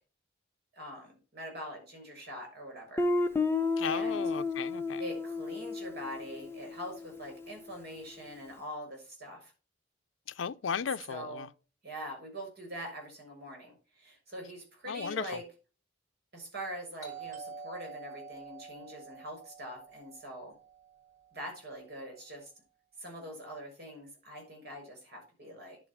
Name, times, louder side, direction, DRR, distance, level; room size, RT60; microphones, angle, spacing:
voice 1, 0.7-3.0 3.8-4.3 5.0-9.5 10.8-11.5 11.8-15.4 16.3-20.5 21.3-22.5 23.0-25.8, equal, 55° right, 6.3 m, -43 dB
Guitar, 3.0-7.7, left 3 dB, 15° left, 0.8 m, -32 dB
voice 2, 3.8-5.0 10.4-11.5 14.9-15.3, left 6 dB, 85° left, 0.5 m, -35 dB
Doorbell, 17.0-21.6, right 5 dB, 20° right, 5.8 m, -47 dB
10.0 x 5.1 x 7.2 m
head